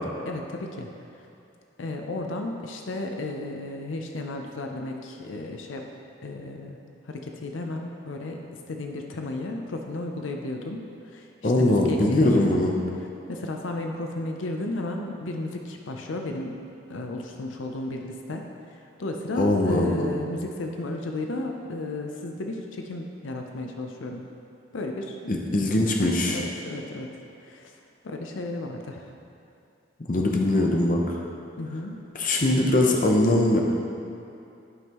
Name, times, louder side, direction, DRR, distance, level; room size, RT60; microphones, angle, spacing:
voice 1, 0.3-0.9 1.2-1.3 1.8-5.9 6.2-6.8 7.1-10.8 11.1-12.7 13.0-16.6 16.9-24.2 24.7-25.2 26.3-27.1 27.4-27.7 28.0-29.1 31.6-32.0, left 2 dB, 85° left, 3 dB, 0.6 m, -34 dB
voice 2, 11.4-12.7 19.3-20.1 25.3-26.4 30.1-31.0 32.2-33.6, left 1 dB, 45° left, -1 dB, 0.7 m, -21 dB
11.0 x 5.4 x 3.0 m, 2.6 s
head